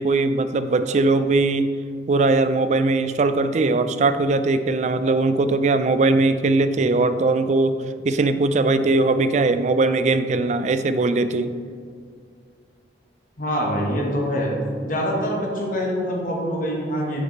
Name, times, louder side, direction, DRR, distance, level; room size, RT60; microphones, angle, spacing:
voice 1, 0.0-1.7 2.1-11.5, right 3 dB, 40° right, 11 dB, 0.3 m, -20 dB
voice 2, 13.4-14.5 14.8-17.2, equal, 45° left, -1 dB, 1.4 m, -24 dB
6.1 x 5.9 x 4.0 m, 2.2 s
head